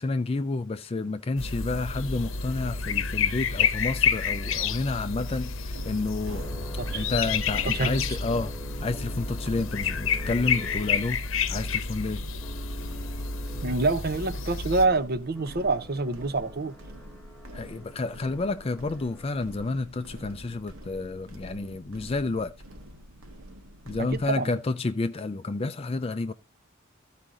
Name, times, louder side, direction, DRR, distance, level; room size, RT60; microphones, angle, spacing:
voice 1, 0.0-6.4 6.9-8.5 8.8-11.2 11.5-12.2 17.5-22.5 23.9-26.3, left 3 dB, 25° left, 0.4 m, -30 dB
sound 1, 1.4-14.9, left 6 dB, 65° left, 0.9 m, -29 dB
sound 2, 4.4-19.8, right 2 dB, 10° left, 1.1 m, -48 dB
sound 3, 5.7-24.3, equal, 85° right, 1.6 m, -46 dB
voice 2, 7.7-8.0 13.6-16.7 24.0-24.5, right 3 dB, 45° right, 0.7 m, -27 dB
14.0 x 5.0 x 3.8 m
head